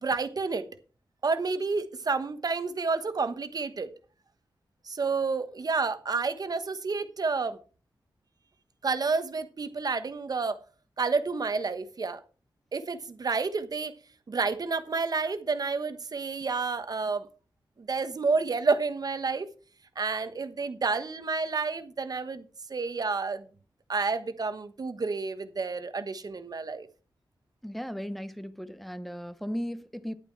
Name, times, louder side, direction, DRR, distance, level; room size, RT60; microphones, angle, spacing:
voice 1, 0.0-0.7 1.2-3.9 4.8-7.6 8.8-10.6 11.0-12.2 12.7-13.9 14.3-17.3 17.8-19.5 19.9-22.4 22.7-23.5 23.9-26.9, right 4 dB, 50° right, 1.2 m, -30 dB
voice 2, 27.6-30.1, equal, ahead, 0.9 m, -36 dB
11.0 x 8.8 x 4.7 m
wide cardioid pair, 115°, 8 cm